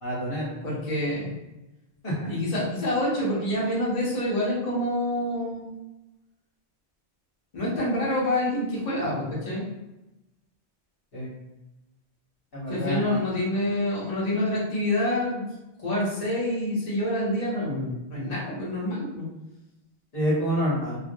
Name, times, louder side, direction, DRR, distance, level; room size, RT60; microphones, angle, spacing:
voice 1, 0.0-0.6 2.0-2.3 11.1-11.3 12.5-13.3 20.1-21.0, equal, 60° left, -6 dB, 1.1 m, -27 dB
voice 2, 0.6-1.3 2.3-5.7 7.5-9.6 12.7-15.4 15.8-19.3, left 1 dB, 40° left, -7 dB, 0.8 m, -27 dB
2.4 x 2.1 x 2.6 m, 0.97 s
omnidirectional pair, 1.1 m